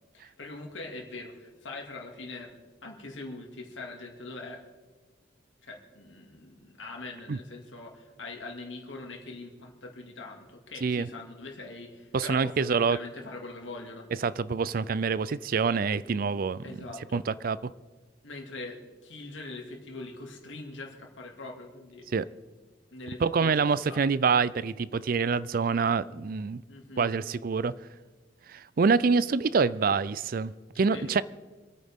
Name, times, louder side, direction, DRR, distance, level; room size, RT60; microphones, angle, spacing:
voice 1, 0.1-2.5 2.8-4.6 5.6-14.1 16.6-17.2 18.2-22.1 22.9-24.0 26.7-27.1 30.9-31.2, left 2 dB, 90° left, 1 dB, 2.4 m, -42 dB
voice 2, 12.1-13.0 14.2-16.6 17.1-17.6 22.1-22.3 23.2-26.6 27.0-27.7 28.5-31.2, right 5 dB, 50° right, 18 dB, 0.4 m, -26 dB
26.5 x 9.4 x 3.6 m, 1.3 s
head